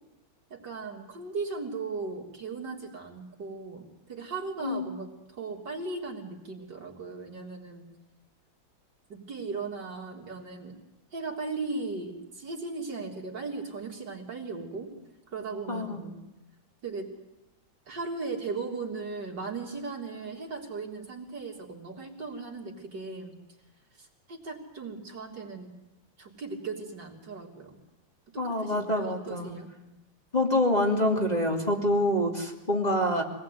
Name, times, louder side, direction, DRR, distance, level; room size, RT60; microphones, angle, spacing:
voice 1, 0.5-7.9 9.1-10.8 11.1-14.9 15.3-16.2 16.8-17.1 17.9-23.4 24.0-25.7 26.2-27.8 28.3-29.7, right 4 dB, 55° right, 0 dB, 3.9 m, -37 dB
voice 2, 15.7-16.0 28.4-29.5 30.3-33.2, left 1 dB, 20° left, -1 dB, 2.9 m, -26 dB
25.0 x 19.0 x 9.5 m, 0.99 s
omnidirectional pair, 2.2 m